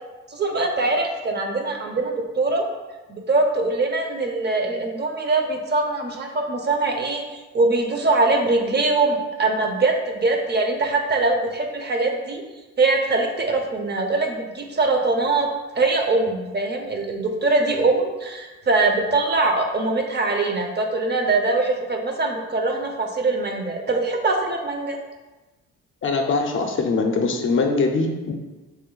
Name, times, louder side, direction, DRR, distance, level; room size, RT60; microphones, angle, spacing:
voice 1, 0.3-2.6 3.1-12.4 12.8-15.5 15.7-25.0, right 3 dB, 35° right, 3 dB, 0.5 m, -22 dB
voice 2, 26.0-28.3, left 3 dB, 45° left, 3 dB, 0.5 m, -22 dB
3.1 x 2.6 x 3.8 m, 1.2 s
cardioid pair, 90°, 30 cm